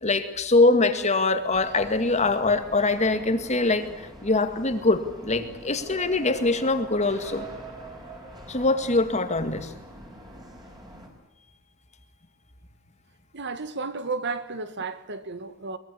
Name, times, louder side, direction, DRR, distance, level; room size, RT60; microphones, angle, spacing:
voice 1, 0.0-7.5 8.5-9.7, left 3 dB, 30° left, 2.1 m, -23 dB
sound 1, 1.5-11.1, right 2 dB, 20° right, 6.1 m, -44 dB
voice 2, 13.3-15.8, right 4 dB, 55° right, 1.6 m, -33 dB
23.0 x 21.5 x 8.6 m
head